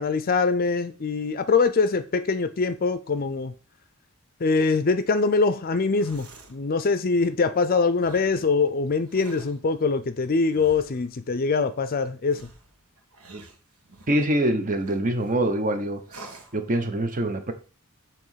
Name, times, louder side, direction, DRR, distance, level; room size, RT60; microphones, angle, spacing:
voice 1, 0.0-3.5 4.4-12.4, left 4 dB, 40° left, 0.5 m, -23 dB
sound 1, 5.7-6.6 7.9-8.4 9.0-9.6 10.5-11.1 12.3-14.2 14.8-15.4 16.1-16.6, right 2 dB, 85° right, 1.4 m, -47 dB
voice 2, 14.1-16.0 16.5-17.5, right 1 dB, 40° right, 1.0 m, -24 dB
7.8 x 3.1 x 5.7 m
head